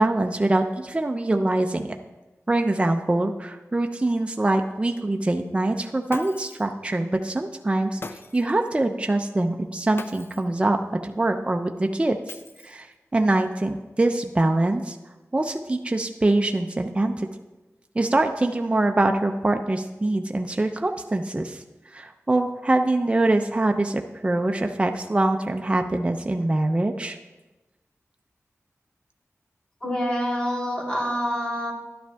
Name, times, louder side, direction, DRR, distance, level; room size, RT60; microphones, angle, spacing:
voice 1, 0.0-1.9 2.5-8.0 8.3-12.2 12.6-12.9 13.1-15.0 15.3-17.3 18.0-21.6 21.9-27.2, right 2 dB, 20° right, 4 dB, 0.5 m, -24 dB
Shatter, 6.1-6.7 8.0-8.6 10.0-10.5 12.3-12.9, left 3 dB, 45° left, 0.5 m, -40 dB
voice 2, 29.8-31.7, equal, 20° left, -4 dB, 3.1 m, -26 dB
11.5 x 10.0 x 3.4 m, 1.1 s
wide cardioid pair, 100°, 5 cm